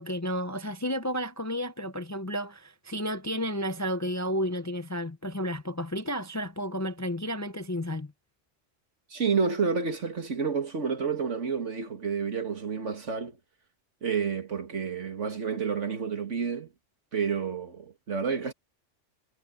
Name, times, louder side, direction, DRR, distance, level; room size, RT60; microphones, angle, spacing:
voice 1, 0.0-8.1, equal, 20° left, 0.5 m, -32 dB
voice 2, 9.1-13.3 14.0-16.7 17.1-18.5, right 5 dB, 70° right, 2.3 m, -29 dB
omnidirectional pair, 1.3 m